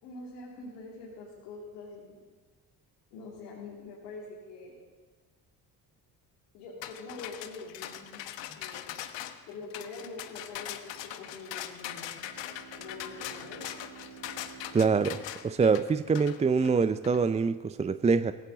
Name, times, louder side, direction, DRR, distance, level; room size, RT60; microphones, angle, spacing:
voice 1, 0.0-2.2 3.1-4.8 6.5-8.9 9.5-12.1 12.8-13.7, left 3 dB, 80° left, -5 dB, 3.0 m, -45 dB
sound 1, 6.8-17.2, left 12 dB, 65° left, 1.2 m, -41 dB
Bowed string instrument, 11.8-16.5, right 7 dB, 65° right, 1.6 m, -52 dB
voice 2, 14.7-15.2 15.4-18.3, right 5 dB, 15° right, 13 dB, 0.4 m, -25 dB
17.0 x 16.5 x 3.9 m, 1.3 s
hypercardioid pair, 55°, 48 cm